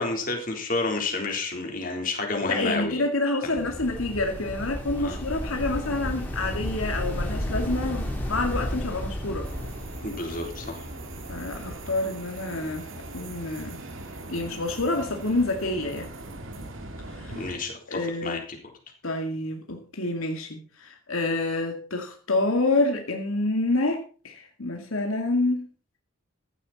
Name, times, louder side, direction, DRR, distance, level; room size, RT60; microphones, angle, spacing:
voice 1, 0.0-3.0 3.4-3.5 5.0-5.2 10.0-10.9 17.3-18.6, left 3 dB, 40° left, 2 dB, 3.8 m, -30 dB
voice 2, 2.5-9.5 11.3-12.9 13.1-13.8 14.3-16.1 17.1-17.5 17.9-18.4 19.0-25.7, left 2 dB, 75° left, 3 dB, 2.3 m, -28 dB
sound 1, 3.5-11.7, equal, 10° left, 3.6 m, -33 dB
sound 2, 9.4-17.6, right 2 dB, 65° right, 2.4 m, -40 dB
15.0 x 11.5 x 4.2 m, 0.38 s
head